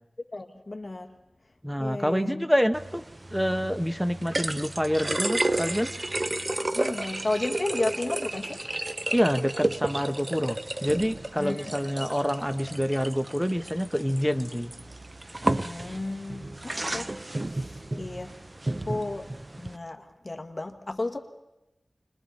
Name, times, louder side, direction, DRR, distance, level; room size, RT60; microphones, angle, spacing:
voice 1, 0.3-1.1 1.8-2.5 4.5-4.6 6.7-8.6 11.4-11.7 15.6-17.1 17.5-18.3 18.9-19.3 19.6-21.2, left 2 dB, 35° left, 4 dB, 1.5 m, -33 dB
voice 2, 1.6-3.0 3.3-5.9 9.1-14.7, equal, 5° right, 10 dB, 0.9 m, -27 dB
sound 1, 2.7-19.8, right 2 dB, 35° right, 0.7 m, -32 dB
29.0 x 21.5 x 4.2 m, 0.96 s
wide cardioid pair, 75°, 0 cm